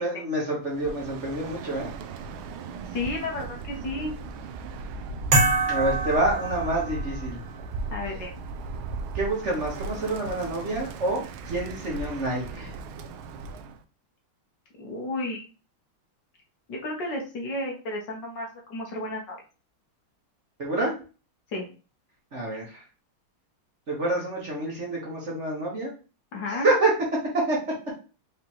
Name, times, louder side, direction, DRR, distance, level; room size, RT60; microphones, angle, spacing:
voice 1, 0.0-1.9 5.6-7.4 9.1-12.7 20.6-20.9 22.3-22.8 23.9-25.9 26.5-26.9 27.3-27.6, right 2 dB, 40° right, -3 dB, 1.4 m, -27 dB
Bird, 0.7-13.8, right 3 dB, 80° right, 1.4 m, -37 dB
voice 2, 2.9-4.1 7.9-8.3 14.8-15.4 16.7-19.4 21.5-21.7 26.3-26.7, left 2 dB, 60° left, 0 dB, 1.6 m, -32 dB
sound 1, 5.3-7.2, right 2 dB, 60° right, 2.1 m, -25 dB
5.1 x 3.3 x 2.9 m, 0.34 s
omnidirectional pair, 2.3 m